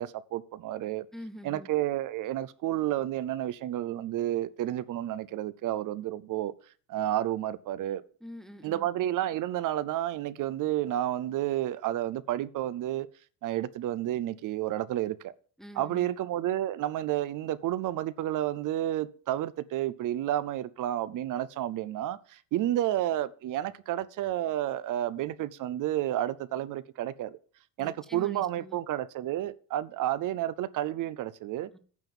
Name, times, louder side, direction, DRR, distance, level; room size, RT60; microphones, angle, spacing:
voice 1, 0.0-1.1 1.4-6.5 6.9-8.0 8.6-13.1 13.4-15.3 15.8-27.4 27.8-31.7, right 13 dB, 45° right, 0.6 m, -31 dB
voice 2, 1.1-1.7 8.2-8.9 15.6-16.1 27.8-28.8 31.7-31.8, equal, ahead, 0.5 m, -45 dB
9.2 x 5.5 x 7.1 m
cardioid pair, 145°, 44 cm